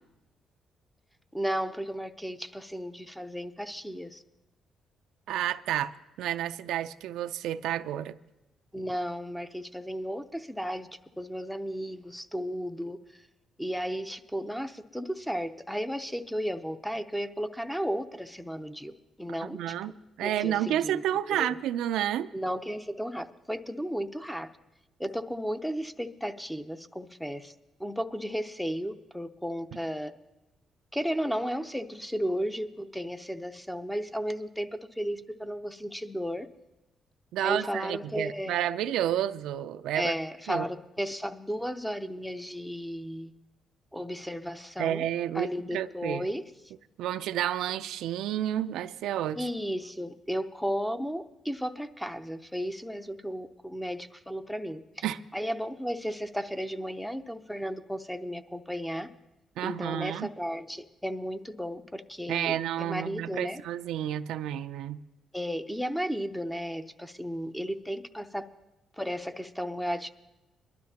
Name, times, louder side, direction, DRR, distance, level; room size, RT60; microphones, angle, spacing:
voice 1, 1.3-4.2 8.7-10.9 11.2-13.2 13.6-18.9 19.2-19.7 20.2-21.0 21.3-21.6 22.3-24.5 25.0-27.5 27.8-30.1 30.9-36.5 37.4-38.7 39.9-43.3 43.9-45.0 45.3-46.4 49.3-55.0 55.3-59.1 59.6-63.6 65.3-68.5 69.0-70.1, equal, 5° left, 0.6 m, -34 dB
voice 2, 5.3-8.2 19.4-19.9 20.2-22.3 37.3-40.1 40.5-40.7 44.8-46.3 47.0-49.5 55.0-55.2 59.6-60.3 62.3-65.0, right 11 dB, 85° right, 0.4 m, -30 dB
22.5 x 12.0 x 2.8 m
cardioid pair, 90°, 0 cm